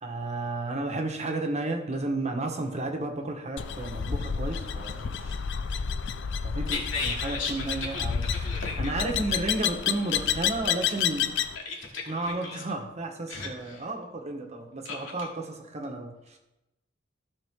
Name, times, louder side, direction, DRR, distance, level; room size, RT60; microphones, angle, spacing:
voice 1, 0.0-5.3 6.4-8.5 8.8-11.3 12.1-16.4, right 2 dB, 35° right, 3 dB, 1.3 m, -33 dB
sound 1, 3.6-11.6, left 7 dB, 65° left, 0.5 m, -30 dB
voice 2, 6.7-8.9 11.5-12.6 13.3-13.9 14.8-15.3, left 3 dB, 80° left, -2 dB, 2.5 m, -36 dB
15.5 x 5.2 x 3.7 m, 0.94 s
head